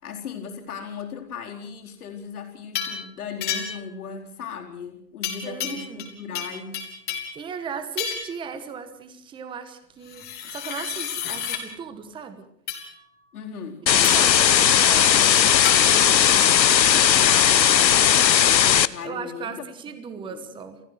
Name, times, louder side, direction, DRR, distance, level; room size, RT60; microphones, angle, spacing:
voice 1, 0.0-7.0 10.4-10.6 13.3-13.8 16.2-19.6 20.1-20.4, left 6 dB, 60° left, 2 dB, 4.3 m, -37 dB
sound 1, 2.7-3.0 3.4-3.9 5.2-6.1 6.3-7.4 8.0-8.4 10.1-11.6 12.7-12.9 14.0-14.3 15.6-15.8, left 8 dB, 20° left, 3.5 m, -30 dB
voice 2, 5.4-6.1 7.3-12.5 13.9-15.3 15.9-16.3 18.8-20.8, right 6 dB, 10° right, 10 dB, 1.3 m, -37 dB
sound 2, 13.9-18.9, left 9 dB, 80° left, 1.0 m, -17 dB
29.5 x 15.0 x 6.4 m, 0.77 s
hypercardioid pair, 140°, 50 cm